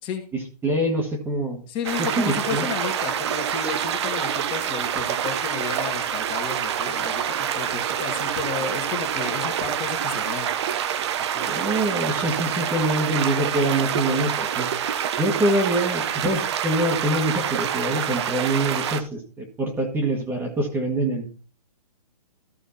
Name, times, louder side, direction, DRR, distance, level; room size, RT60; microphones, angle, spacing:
voice 1, 0.3-1.6 2.0-2.7 7.7-7.8 11.5-14.7 15.2-21.3, right 1 dB, 10° right, 2 dB, 1.6 m, -25 dB
voice 2, 1.7-10.5 11.2-11.8, left 6 dB, 25° left, 3 dB, 1.9 m, -33 dB
sound 1, 1.8-19.0, right 9 dB, 45° right, 1.0 m, -26 dB
14.0 x 5.0 x 4.2 m, 0.37 s
hypercardioid pair, 140°, 20 cm